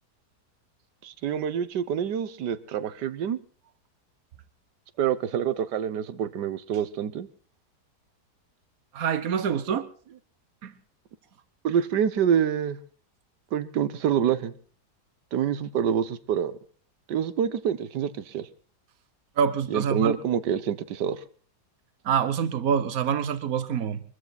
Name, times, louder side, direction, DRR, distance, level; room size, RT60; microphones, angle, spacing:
voice 1, 1.0-3.4 5.0-7.3 11.6-12.8 13.5-14.5 15.3-16.6 17.1-18.5 19.7-21.2, right 8 dB, 85° right, 1.6 m, -26 dB
voice 2, 8.9-9.9 10.6-10.7 19.4-20.1 22.0-24.0, right 7 dB, 60° right, 1.5 m, -26 dB
23.0 x 14.5 x 4.1 m
omnidirectional pair, 1.8 m